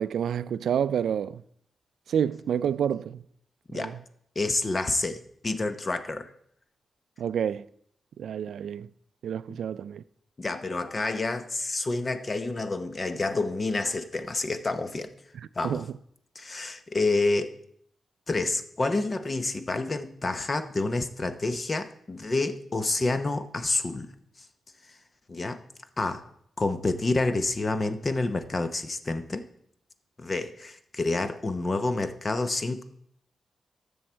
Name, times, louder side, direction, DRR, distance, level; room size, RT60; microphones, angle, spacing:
voice 1, 0.0-1.4 2.1-3.2 3.7-3.9 7.2-7.7 8.2-8.9 9.2-10.0 15.6-15.9, right 8 dB, 90° right, 0.3 m, -28 dB
voice 2, 4.4-6.3 10.4-15.1 15.6-15.8 16.3-17.6 18.3-24.1 25.3-25.6 26.0-26.3 26.6-29.5 30.2-32.8, left 2 dB, 30° left, 0.8 m, -28 dB
13.0 x 7.1 x 4.5 m
wide cardioid pair, 125°, 0 cm